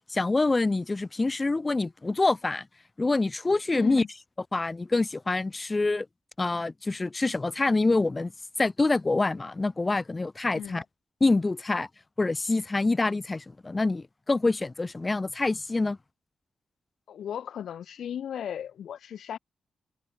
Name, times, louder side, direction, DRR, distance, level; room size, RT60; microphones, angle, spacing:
voice 1, 0.1-2.6 3.0-4.0 4.5-6.0 6.4-8.3 8.6-10.8 11.2-11.9 12.2-16.0, left 3 dB, 25° left, 1.5 m, -26 dB
voice 2, 3.7-4.1 10.5-10.8 17.1-19.4, left 9 dB, 80° left, 1.7 m, -36 dB
cardioid pair, 110°, 0 cm